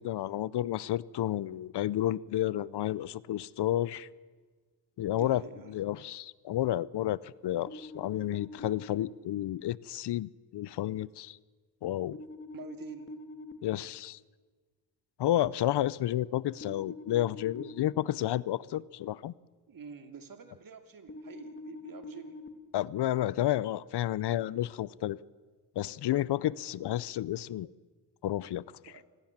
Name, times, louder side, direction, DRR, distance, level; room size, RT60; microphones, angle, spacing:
voice 1, 0.0-4.1 5.0-5.4 5.7-11.4 11.8-12.2 13.6-14.2 15.2-19.3 22.7-25.2 25.8-27.7 28.2-28.6, left 13 dB, 75° left, 0.7 m, -31 dB
voice 2, 5.1-5.8 12.5-13.2 16.1-16.2 19.7-22.4 28.8-29.1, right 6 dB, 55° right, 2.8 m, -47 dB
sound 1, 7.7-9.0 12.1-13.5 16.6-18.0 21.1-22.5, left 2 dB, 30° left, 2.7 m, -45 dB
27.0 x 20.0 x 7.4 m
cardioid pair, 90°, 40 cm